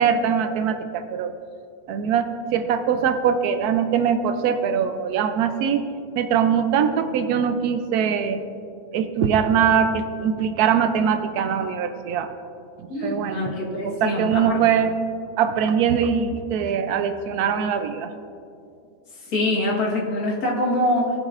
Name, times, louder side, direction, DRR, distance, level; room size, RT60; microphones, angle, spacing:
voice 1, 0.0-1.3 1.9-5.8 6.2-8.4 8.9-12.3 12.8-13.5 13.8-14.9 15.4-18.1, right 7 dB, 90° right, 8 dB, 1.1 m, -22 dB
voice 2, 12.9-14.6 19.3-21.1, left 1 dB, 75° left, -4 dB, 1.9 m, -24 dB
15.5 x 7.7 x 2.4 m, 2.5 s
omnidirectional pair, 1.6 m